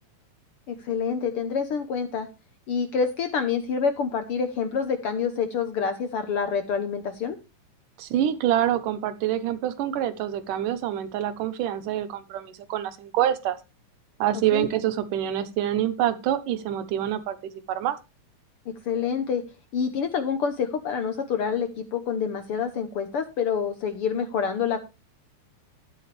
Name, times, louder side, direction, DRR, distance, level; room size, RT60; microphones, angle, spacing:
voice 1, 0.7-2.3 2.7-7.4 14.5-14.7 18.8-19.4 19.7-24.8, left 6 dB, 65° left, 8 dB, 1.5 m, -27 dB
voice 2, 8.0-13.6 14.2-17.4 17.7-18.0, right 11 dB, 85° right, 11 dB, 2.7 m, -26 dB
12.5 x 9.6 x 3.4 m, 0.27 s
omnidirectional pair, 3.6 m